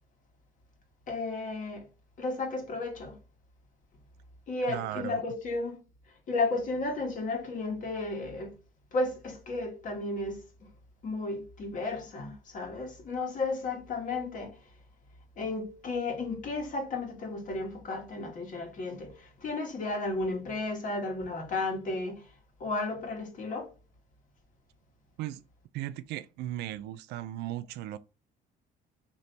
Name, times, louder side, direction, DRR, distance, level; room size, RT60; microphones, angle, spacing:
voice 1, 1.1-1.9 2.2-3.2 4.5-5.8 6.3-8.6 8.9-10.4 11.0-14.6 15.4-22.3 22.6-23.7, left 3 dB, 50° left, 1.5 m, -33 dB
voice 2, 4.7-5.2 25.2-25.4 25.7-28.0, right 13 dB, 80° right, 0.4 m, -36 dB
3.3 x 3.0 x 4.2 m
cardioid pair, 110°, 17 cm